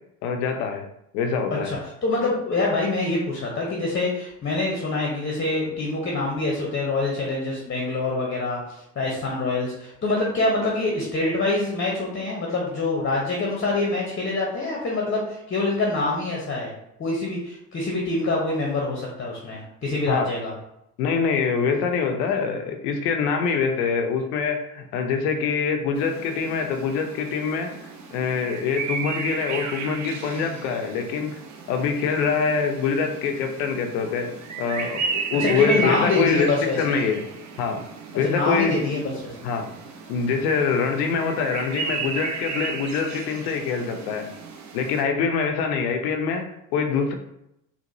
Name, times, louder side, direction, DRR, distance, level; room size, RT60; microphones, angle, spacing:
voice 1, 0.2-0.9 1.1-1.7 20.1-20.3 21.0-27.7 28.1-31.4 31.7-37.2 37.6-37.8 38.2-38.9 39.4-39.7 40.1-44.3 44.7-47.1, left 5 dB, 70° left, 5 dB, 0.7 m, -24 dB
voice 2, 2.0-16.7 17.0-20.5 35.3-37.0 38.2-39.3, left 2 dB, 25° left, -2 dB, 0.9 m, -25 dB
sound 1, 25.9-45.0, right 5 dB, 35° right, 0.8 m, -34 dB
4.0 x 2.5 x 2.7 m, 0.80 s
hypercardioid pair, 65°, 48 cm